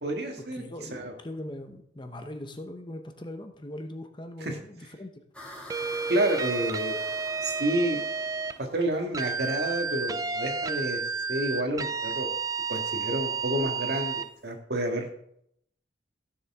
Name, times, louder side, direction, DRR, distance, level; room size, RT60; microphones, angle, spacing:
voice 1, 0.0-0.6 0.9-1.1 4.4-4.6 6.1-7.0 7.4-8.0 8.6-11.0 11.3-12.3 12.7-15.1, right 1 dB, 60° right, 3 dB, 1.8 m, -29 dB
voice 2, 0.6-5.1, left 1 dB, 25° left, 6 dB, 0.9 m, -40 dB
sound 1, 5.3-14.5, left 1 dB, 5° left, 2.3 m, -49 dB
sound 2, 5.7-8.6 9.1-14.3, right 5 dB, 20° right, 0.4 m, -31 dB
16.0 x 7.0 x 3.6 m, 0.71 s
head